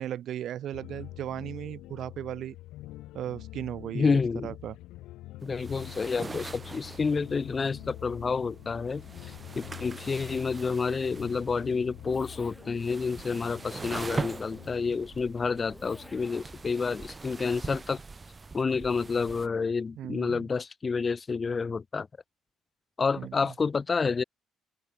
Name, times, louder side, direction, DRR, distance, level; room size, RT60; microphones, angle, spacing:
voice 1, 0.0-2.6 3.1-4.7 20.0-20.5 23.2-23.4, right 11 dB, 60° right, 0.8 m, -36 dB
sound 1, 0.7-17.0, left 17 dB, 85° left, 1.8 m, -46 dB
voice 2, 3.9-4.5 5.4-18.0 18.5-22.1 23.0-24.2, left 5 dB, 25° left, 0.3 m, -29 dB
sound 2, 5.4-19.5, right 4 dB, 20° right, 5.2 m, -42 dB
Zipper (clothing), 8.8-16.7, equal, ahead, 3.7 m, -54 dB
open air
cardioid pair, 140°, 0 cm